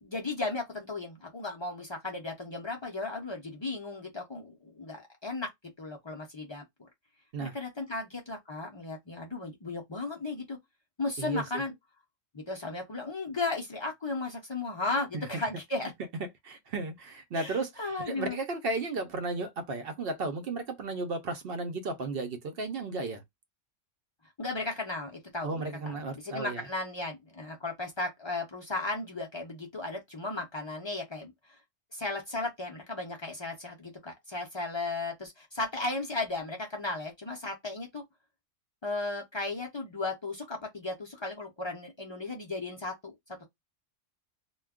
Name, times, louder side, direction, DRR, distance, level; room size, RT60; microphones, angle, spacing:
voice 1, 0.0-5.5 5.8-6.9 7.4-10.6 11.0-11.7 12.3-15.9 17.3-18.4 24.4-31.3 31.9-38.0 38.8-43.1, left 2 dB, 45° left, 0.3 m, -35 dB
voice 2, 16.4-23.2 25.4-26.7, right 3 dB, 60° right, 0.7 m, -34 dB
2.2 x 2.2 x 3.5 m
omnidirectional pair, 1.3 m